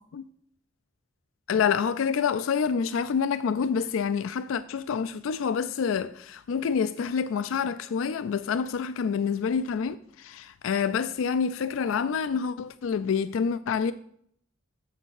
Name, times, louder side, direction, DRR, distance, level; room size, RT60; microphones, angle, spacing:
voice 1, 1.5-13.9, left 6 dB, 80° left, 0.4 m, -27 dB
7.2 x 6.6 x 6.4 m
head